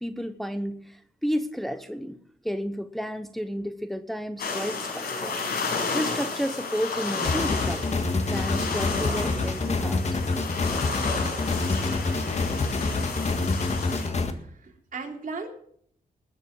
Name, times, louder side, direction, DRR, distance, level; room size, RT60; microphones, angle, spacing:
voice 1, 0.0-2.2 2.4-5.4 5.9-10.0, equal, ahead, 9 dB, 0.8 m, -32 dB
sound 1, 4.4-14.1, left 4 dB, 85° left, 5.6 m, -31 dB
sound 2, 7.2-14.3, left 3 dB, 45° left, 1.7 m, -27 dB
voice 2, 14.3-15.5, right 4 dB, 55° right, 1 dB, 3.4 m, -37 dB
20.0 x 7.3 x 6.1 m, 0.64 s
cardioid pair, 100°, 16 cm